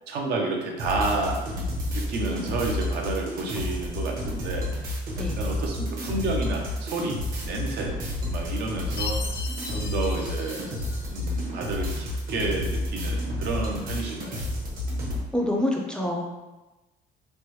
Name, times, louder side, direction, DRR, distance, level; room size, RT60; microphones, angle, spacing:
voice 1, 0.1-1.4 1.9-4.7 5.2-7.2 7.4-7.9 8.2-9.2 9.7-10.8 11.1-14.4, right 3 dB, 75° right, 0 dB, 0.6 m, -30 dB
sound 1, 0.8-15.2, left 1 dB, 55° right, 0.9 m, -30 dB
voice 2, 5.2-5.5 15.3-16.3, left 1 dB, 5° left, -1 dB, 0.5 m, -27 dB
Chime, 9.0-11.4, left 4 dB, 70° left, 0.6 m, -38 dB
3.2 x 2.1 x 3.0 m, 1.1 s
cardioid pair, 110°, 17 cm